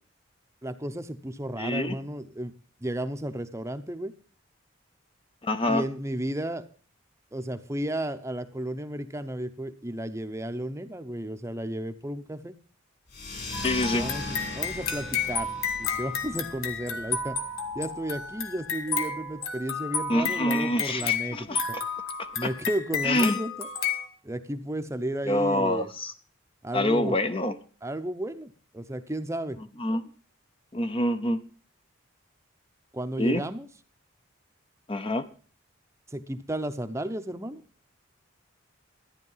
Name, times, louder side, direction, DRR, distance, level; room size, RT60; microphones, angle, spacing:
voice 1, 0.6-2.5 2.8-4.1 5.7-6.7 7.3-12.5 13.9-15.5 15.8-17.4 17.7-21.6 22.4-23.7 24.2-25.9 26.6-27.2 27.8-29.6 32.9-33.7 36.1-37.6, right 1 dB, 15° right, 9 dB, 0.7 m, -33 dB
voice 2, 1.6-2.0 5.4-5.8 13.6-14.1 20.1-21.8 22.2-22.5 23.0-23.4 25.3-26.1 26.7-27.6 29.8-30.0 30.7-31.4 33.2-33.4 34.9-35.3, left 1 dB, 25° left, 9 dB, 0.6 m, -26 dB
sound 1, 13.1-18.2, left 2 dB, 50° left, 4.0 m, -39 dB
sound 2, 13.5-24.1, left 6 dB, 90° left, 1.6 m, -32 dB
13.5 x 10.5 x 5.6 m, 0.42 s
head